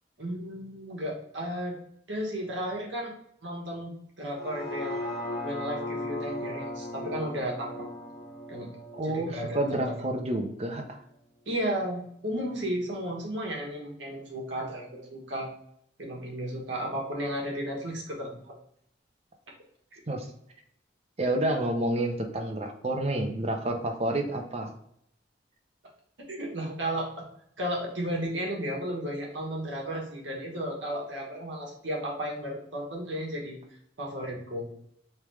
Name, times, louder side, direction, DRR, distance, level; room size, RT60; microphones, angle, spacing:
voice 1, 0.2-1.8 2.1-3.1 3.4-5.0 5.4-7.9 8.5-8.7 9.0-10.0 11.5-15.5 16.0-18.5 19.9-20.2 26.3-27.2 27.6-33.6 34.0-34.7, equal, 75° right, -1 dB, 1.3 m, -34 dB
sound 1, 4.3-10.4 10.9-11.0, left 1 dB, 65° left, 1.5 m, -37 dB
voice 2, 8.9-11.0 20.1-20.3 21.2-24.7, right 1 dB, 35° right, 4 dB, 0.6 m, -29 dB
3.5 x 3.4 x 3.1 m, 0.72 s
head